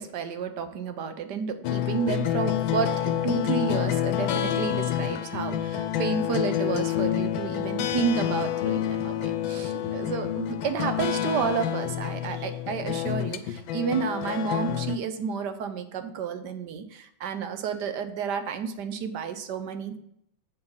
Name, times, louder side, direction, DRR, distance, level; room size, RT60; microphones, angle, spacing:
voice 1, 0.0-20.0, right 6 dB, 70° right, 9 dB, 1.2 m, -31 dB
sound 1, 1.6-15.0, left 11 dB, 85° left, 1.4 m, -28 dB
7.9 x 4.3 x 5.4 m, 0.72 s
omnidirectional pair, 2.1 m